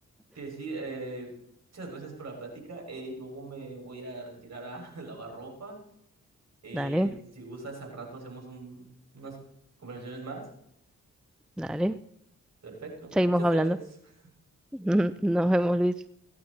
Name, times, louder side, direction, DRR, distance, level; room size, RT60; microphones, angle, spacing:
voice 1, 0.3-1.3 1.7-5.8 6.6-8.9 9.1-9.4 9.8-10.5 12.6-14.1, right 3 dB, 55° right, 0 dB, 6.3 m, -41 dB
voice 2, 6.7-7.1 11.6-12.0 13.2-13.8 14.7-15.9, equal, ahead, 13 dB, 0.5 m, -24 dB
17.5 x 10.5 x 4.2 m, 0.75 s
cardioid pair, 55°, 33 cm